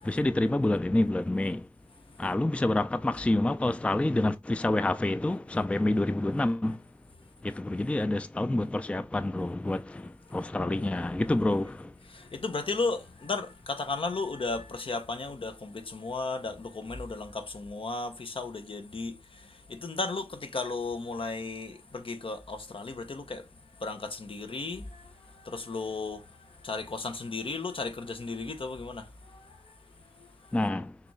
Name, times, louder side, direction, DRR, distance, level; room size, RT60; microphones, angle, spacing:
voice 1, 0.0-1.6 2.2-6.8 7.4-11.9 30.5-30.9, left 1 dB, 15° left, 0.3 m, -27 dB
voice 2, 10.3-11.2 12.1-23.5 23.8-29.7 30.2-30.5, left 3 dB, 65° left, 0.8 m, -35 dB
6.6 x 2.4 x 3.1 m
cardioid pair, 40°, 10 cm